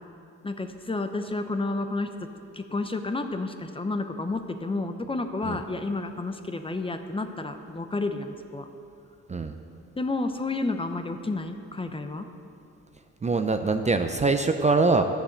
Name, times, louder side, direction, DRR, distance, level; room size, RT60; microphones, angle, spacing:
voice 1, 0.4-2.1 2.5-8.7 10.0-12.3, left 2 dB, 20° left, 7 dB, 0.8 m, -30 dB
voice 2, 13.2-15.0, right 3 dB, 25° right, 7 dB, 0.6 m, -23 dB
11.5 x 6.9 x 8.0 m, 2.6 s
cardioid pair, 90°, 30 cm